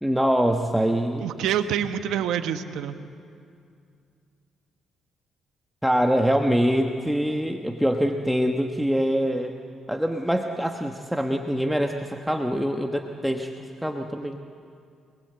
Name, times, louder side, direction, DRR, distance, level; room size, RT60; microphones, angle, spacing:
voice 1, 0.0-1.3 5.8-9.6 9.9-13.5 13.8-14.4, equal, ahead, 3 dB, 1.2 m, -24 dB
voice 2, 1.2-3.0, right 9 dB, 85° right, 8 dB, 1.3 m, -26 dB
26.5 x 21.5 x 8.1 m, 2.4 s
cardioid pair, 90°, 0 cm